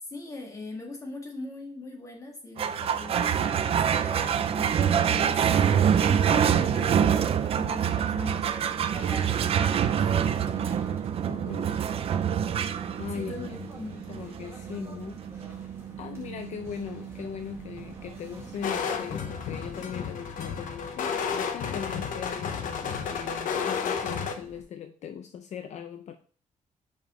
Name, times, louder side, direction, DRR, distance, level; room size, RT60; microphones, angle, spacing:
voice 1, 0.1-4.7 5.1-5.4 6.0-10.7 13.1-14.2, left 2 dB, 25° left, 0 dB, 1.7 m, -41 dB
sound 1, 2.6-19.3, right 8 dB, 45° right, 0.4 m, -26 dB
voice 2, 4.9-5.3 11.3-11.8 13.0-13.7 14.1-15.3 16.0-26.2, left 8 dB, 60° left, 8 dB, 0.5 m, -39 dB
sound 2, 8.9-24.6, right 1 dB, 20° right, 1.8 m, -48 dB
sound 3, 18.6-24.3, left 6 dB, 85° left, 0.9 m, -32 dB
5.6 x 5.2 x 4.8 m, 0.43 s
wide cardioid pair, 170°, 13 cm